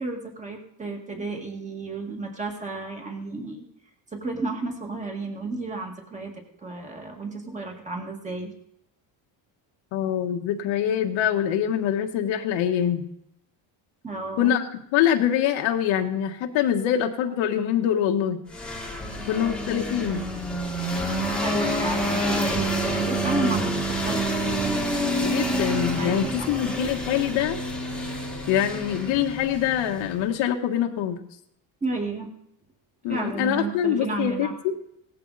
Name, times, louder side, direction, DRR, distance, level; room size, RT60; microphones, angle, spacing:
voice 1, 0.0-3.6 4.1-8.5 14.0-14.5 21.4-24.3 25.9-26.6 31.8-32.3 33.1-34.5, right 3 dB, 15° right, 1 dB, 2.0 m, -32 dB
voice 2, 9.9-13.0 14.4-18.4 19.3-20.3 25.2-27.6 28.5-31.2 33.0-34.8, left 10 dB, 70° left, 4 dB, 1.7 m, -24 dB
sound 1, 18.5-30.3, equal, ahead, 1.7 m, -28 dB
17.5 x 14.0 x 4.2 m, 0.76 s
cardioid pair, 175°, 48 cm